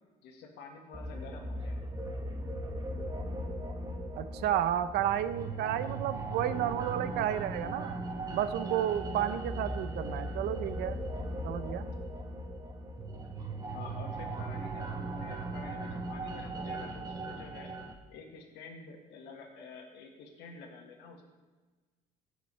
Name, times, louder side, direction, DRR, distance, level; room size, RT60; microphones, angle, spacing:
voice 1, 0.2-1.8 13.7-17.7 18.1-21.2, left 4 dB, 90° left, 1 dB, 1.7 m, -49 dB
sound 1, 0.9-17.9, right 2 dB, 20° right, 1.2 m, -38 dB
voice 2, 4.2-8.0 8.3-11.0 11.4-11.9, right 11 dB, 75° right, 12 dB, 0.7 m, -32 dB
16.0 x 7.0 x 3.3 m, 1.3 s
cardioid pair, 110°, 17 cm